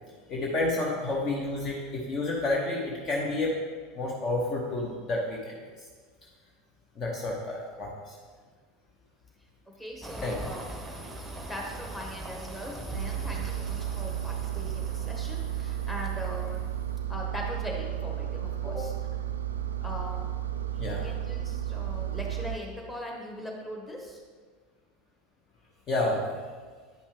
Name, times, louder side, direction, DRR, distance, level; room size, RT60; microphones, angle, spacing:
voice 1, 0.3-3.5 3.9-5.6 7.0-8.1 10.2-10.4 20.8-21.0 25.9-26.2, left 2 dB, 35° left, -2 dB, 0.9 m, -30 dB
voice 2, 9.8-10.7 11.2-16.8 17.1-18.9 19.8-20.2 20.8-24.2, equal, 10° left, -2 dB, 1.5 m, -40 dB
sound 1, 10.0-16.9, right 2 dB, 10° right, 0.9 m, -42 dB
Engine, 12.9-22.6, right 10 dB, 75° right, 0.3 m, -33 dB
9.1 x 5.3 x 3.3 m, 1.5 s
figure-of-eight pair, 80°, 0 cm